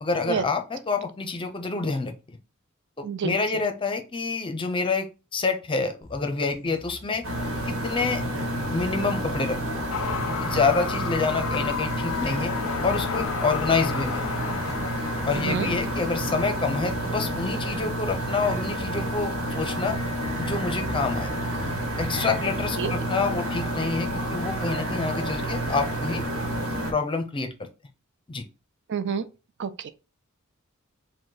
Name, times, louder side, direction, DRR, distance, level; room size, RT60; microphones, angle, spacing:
voice 1, 0.0-2.1 3.0-7.2 7.7-8.2 8.7-9.8 10.4-12.5 12.8-14.2 15.3-20.0 20.4-21.3 22.0-26.2 26.9-27.7 28.3-28.4, left 4 dB, 25° left, 0.6 m, -27 dB
voice 2, 3.0-3.4 15.3-15.7 22.8-22.9 28.9-29.3 29.6-29.9, right 6 dB, 55° right, 0.4 m, -28 dB
sound 1, 6.0-22.0, left 1 dB, 5° right, 1.3 m, -45 dB
sound 2, 7.2-26.9, right 1 dB, 75° right, 1.2 m, -29 dB
sound 3, 9.9-18.5, left 8 dB, 70° left, 0.4 m, -34 dB
5.0 x 2.2 x 3.9 m
head